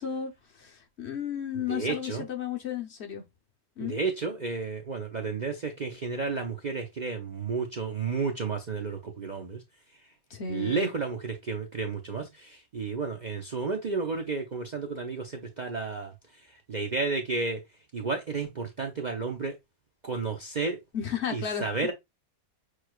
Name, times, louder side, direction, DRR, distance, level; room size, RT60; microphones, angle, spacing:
voice 1, 0.0-3.2 3.8-4.0 10.3-10.9 20.9-21.9, left 7 dB, 55° left, 1.0 m, -34 dB
voice 2, 1.7-2.3 3.8-9.6 10.5-16.1 16.7-17.6 17.9-19.6 20.0-20.8 21.3-21.9, right 4 dB, 45° right, 0.6 m, -32 dB
6.1 x 3.1 x 2.2 m
omnidirectional pair, 1.4 m